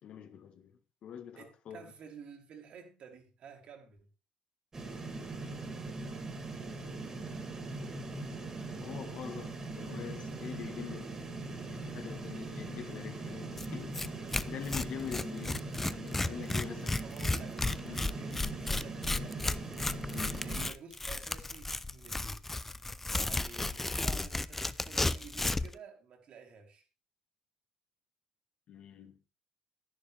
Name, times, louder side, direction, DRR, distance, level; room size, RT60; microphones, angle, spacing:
voice 1, 0.0-1.8 6.8-7.2 8.7-14.2 14.5-17.0 17.8-18.1 20.1-20.4 28.7-29.2, left 8 dB, 55° left, 1.5 m, -44 dB
voice 2, 1.4-4.1 17.0-19.9 20.4-22.4 23.1-26.8, right 6 dB, 55° right, 2.9 m, -52 dB
sound 1, 4.7-20.7, right 3 dB, 25° right, 2.4 m, -41 dB
Tearing, 13.6-13.7 13.9-14.1 14.3-25.7, left 2 dB, 10° left, 0.4 m, -33 dB
11.0 x 11.0 x 3.4 m
cardioid pair, 135°, 2 cm